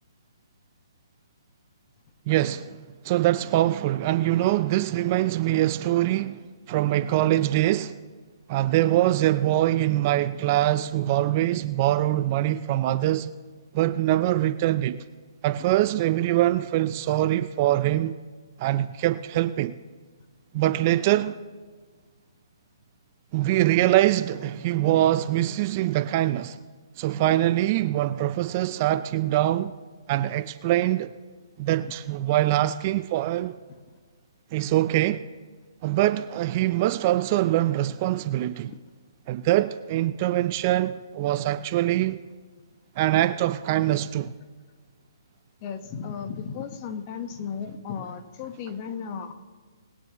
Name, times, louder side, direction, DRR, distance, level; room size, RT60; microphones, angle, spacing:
voice 1, 2.3-2.8 3.0-6.4 6.7-8.0 8.5-13.3 13.7-15.0 15.4-18.2 18.6-19.7 20.5-21.4 23.3-26.6 27.0-29.7 30.1-31.1 31.6-33.6 34.5-35.2 35.8-38.7 39.3-42.2 43.0-44.3, right 14 dB, 30° right, 0.4 m, -23 dB
voice 2, 45.6-49.3, left 6 dB, 30° left, 1.1 m, -35 dB
21.0 x 9.6 x 3.0 m
hypercardioid pair, 150°, 2 cm